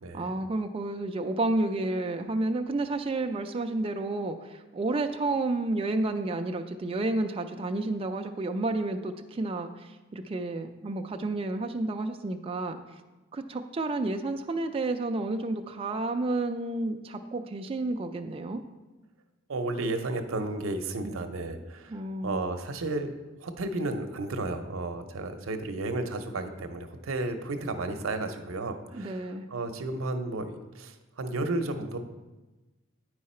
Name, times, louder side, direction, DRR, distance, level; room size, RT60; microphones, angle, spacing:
voice 1, 0.1-12.8 13.3-18.6 21.0-21.2 21.9-22.4 28.9-29.4, right 2 dB, 30° right, 5 dB, 0.4 m, -31 dB
voice 2, 19.5-23.1 23.4-32.0, right 2 dB, 85° right, 7 dB, 0.7 m, -33 dB
9.2 x 4.7 x 4.2 m, 1.1 s
head